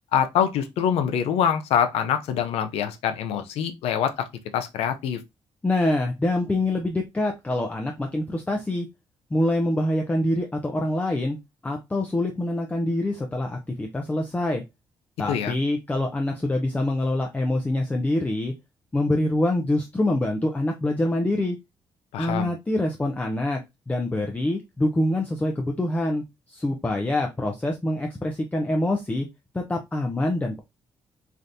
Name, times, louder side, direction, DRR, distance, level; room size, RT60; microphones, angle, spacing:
voice 1, 0.1-4.1 4.5-5.2 15.3-15.5 22.1-22.5, left 8 dB, 90° left, 0.5 m, -24 dB
voice 2, 5.6-8.9 9.3-11.4 11.6-14.6 15.2-18.5 18.9-21.6 22.2-23.6 23.9-29.3 29.5-30.6, left 1 dB, 15° left, 0.5 m, -25 dB
3.4 x 2.5 x 2.6 m
cardioid pair, 80°, 10 cm